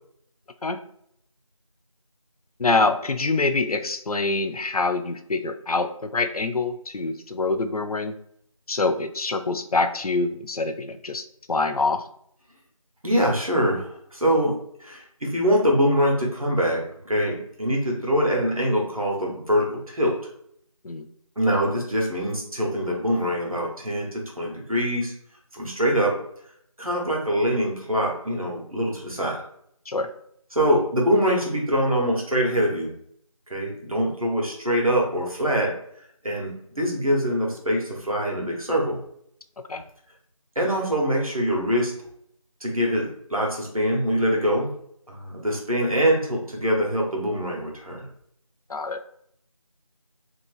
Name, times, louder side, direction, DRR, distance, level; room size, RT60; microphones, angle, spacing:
voice 1, 2.6-8.2 8.7-12.0 20.8-21.1 29.9-30.1 39.7-39.8 48.7-49.0, left 3 dB, 85° left, 9 dB, 0.4 m, -25 dB
voice 2, 13.0-20.2 21.4-25.1 25.5-26.2 26.8-29.4 30.5-32.9 33.5-35.8 36.2-36.5 36.8-39.0 40.5-41.9 42.6-44.7 45.1-48.1, equal, 75° right, -1 dB, 1.1 m, -24 dB
3.2 x 2.8 x 2.4 m, 0.70 s
figure-of-eight pair, 180°, 18 cm